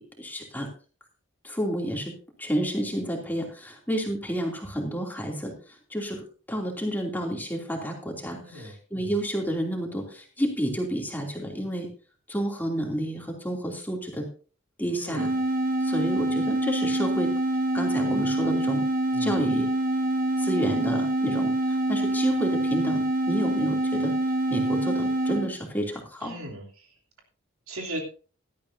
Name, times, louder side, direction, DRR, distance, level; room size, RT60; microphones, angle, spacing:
voice 1, 0.2-0.7 1.4-2.1 2.4-11.9 12.3-14.2 14.8-15.3 15.8-17.3 17.7-18.8 19.2-19.7 20.4-24.1 24.5-26.4, equal, 10° left, 1 dB, 2.8 m, -30 dB
voice 2, 8.4-8.8 14.9-15.4 19.1-19.4 26.2-26.9 27.7-28.0, right 1 dB, 85° right, 0 dB, 3.2 m, -37 dB
sound 1, 15.2-25.5, right 1 dB, 40° right, 1.1 m, -26 dB
17.5 x 12.5 x 2.7 m, 0.37 s
head